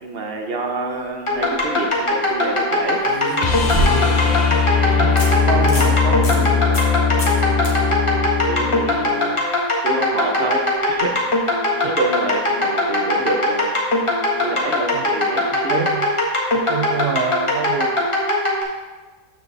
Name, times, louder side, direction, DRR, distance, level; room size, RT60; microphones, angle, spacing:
voice 1, 0.0-3.0 4.1-4.5 8.5-9.4 9.8-11.4 11.8-13.8 14.4-15.9, right 2 dB, 45° right, 3 dB, 0.9 m, -27 dB
sound 1, 1.3-1.6 3.0-4.3 4.7-4.8 5.2-5.3 5.6-5.9 6.2-6.4 6.7-6.9 7.2-7.4 7.6-7.7 10.8-10.9, equal, 55° left, 1.8 m, -26 dB
sound 2, 1.3-18.6, left 1 dB, 20° left, 1.3 m, -20 dB
sound 3, 3.4-9.4 11.9-12.0, left 5 dB, 85° left, 0.3 m, -20 dB
voice 2, 4.1-4.4 4.8-6.6 11.8-11.9 14.9-15.0 15.5-16.1 16.7-18.1, right 7 dB, 75° right, 5 dB, 0.5 m, -27 dB
13.0 x 4.9 x 3.3 m, 1.3 s
omnidirectional pair, 1.6 m